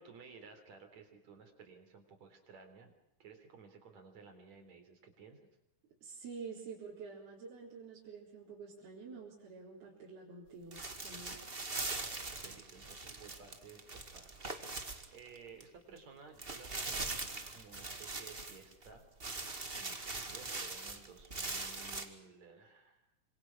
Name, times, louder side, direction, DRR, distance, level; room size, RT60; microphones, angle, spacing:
voice 1, 0.0-2.9 3.2-5.4 12.4-19.0 19.7-23.0, right 5 dB, 50° right, 6 dB, 4.8 m, -56 dB
voice 2, 6.0-11.4, right 5 dB, 90° right, -5 dB, 6.1 m, -48 dB
sound 1, 10.7-15.6 16.0-16.1 16.4-18.9 19.2-22.1, right 3 dB, 25° right, 1.4 m, -41 dB
27.5 x 26.0 x 6.2 m, 0.83 s
omnidirectional pair, 4.3 m